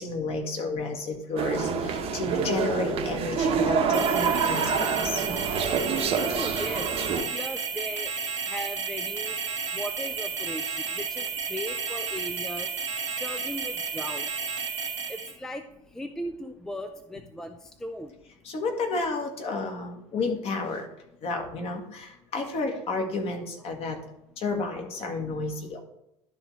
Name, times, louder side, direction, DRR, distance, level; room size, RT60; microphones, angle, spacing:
voice 1, 0.0-5.2 18.4-20.9 21.2-24.0 24.4-25.8, left 3 dB, 40° left, 3 dB, 1.6 m, -31 dB
sound 1, 1.4-7.2, right 6 dB, 40° right, 1.0 m, -27 dB
sound 2, 3.9-15.3, right 5 dB, 80° right, 1.1 m, -32 dB
voice 2, 6.2-6.9 7.3-8.1 8.5-9.4 9.7-12.7 13.2-14.4 15.1-15.6 15.9-18.1, equal, 5° left, 8 dB, 0.4 m, -37 dB
11.5 x 3.9 x 4.6 m, 0.84 s
figure-of-eight pair, 70°, 16 cm